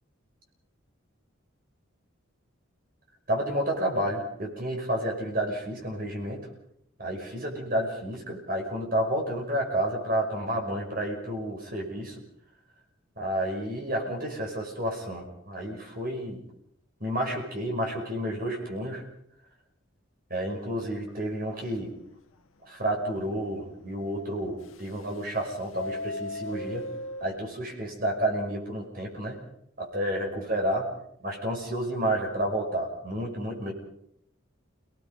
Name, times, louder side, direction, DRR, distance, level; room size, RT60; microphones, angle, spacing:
voice 1, 3.3-6.4 7.0-12.2 13.2-16.4 17.0-19.0 20.3-22.0 22.7-26.8 27.2-29.4 29.8-30.9 31.2-33.7, right 1 dB, 45° right, 1 dB, 5.6 m, -30 dB
Subway metro underground, 20.3-20.7 21.1-21.2 21.5-21.6 22.1-22.2 24.6-25.3 25.6-27.3, left 2 dB, 80° left, 1.4 m, -36 dB
28.5 x 19.5 x 5.4 m, 0.74 s
head